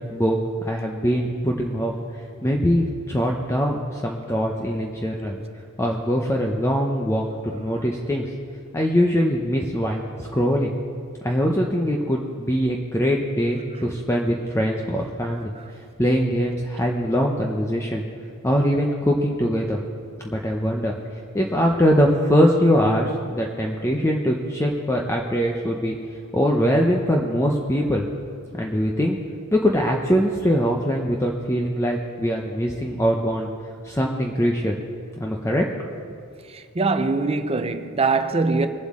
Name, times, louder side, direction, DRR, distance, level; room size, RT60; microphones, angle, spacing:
voice 1, 0.6-1.9 2.4-5.4 5.8-8.3 8.7-10.7 11.2-15.5 16.0-18.0 18.4-19.8 20.2-21.0 21.3-26.0 26.3-28.0 28.5-29.2 29.5-33.5 33.8-34.8 35.2-35.7, equal, 15° left, 0.7 m, -22 dB
voice 2, 36.5-38.7, right 3 dB, 30° right, 0.6 m, -22 dB
21.0 x 7.8 x 3.7 m
head